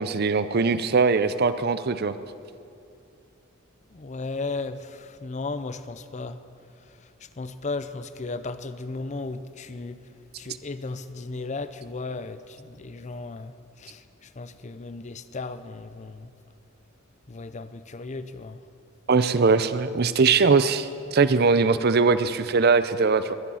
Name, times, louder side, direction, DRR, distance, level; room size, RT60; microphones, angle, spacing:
voice 1, 0.0-2.1 19.1-23.3, right 4 dB, 50° right, 13 dB, 0.6 m, -21 dB
voice 2, 3.9-6.4 6.8-10.0 10.4-16.3 17.3-18.7 20.0-20.4, left 3 dB, 35° left, 12 dB, 0.6 m, -35 dB
22.0 x 10.0 x 5.7 m, 2.5 s
head